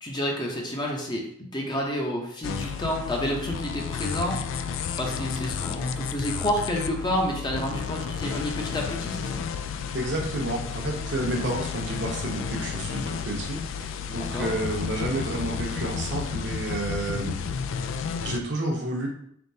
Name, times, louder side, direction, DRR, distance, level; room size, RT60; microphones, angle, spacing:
voice 1, 0.0-4.4 5.0-9.4 14.2-14.5, equal, 20° left, 0 dB, 0.6 m, -29 dB
sound 1, 2.4-18.4, left 6 dB, 85° left, 0.3 m, -32 dB
voice 2, 9.9-17.4 18.2-19.1, right 1 dB, 65° right, 0 dB, 0.9 m, -30 dB
3.9 x 3.6 x 2.7 m, 0.68 s
head